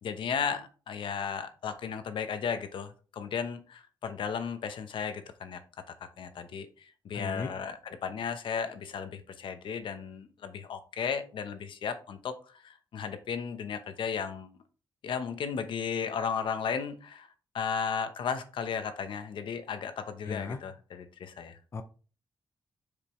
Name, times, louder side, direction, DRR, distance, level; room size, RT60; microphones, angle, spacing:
voice 1, 0.0-5.6 6.2-14.5 15.0-17.3 17.5-21.6, left 6 dB, 80° left, 9 dB, 0.8 m, -35 dB
voice 2, 7.1-7.5 20.3-20.6 21.7-21.8, left 5 dB, 30° left, 9 dB, 0.5 m, -35 dB
6.9 x 5.1 x 3.1 m, 0.37 s
wide cardioid pair, 170°, 8 cm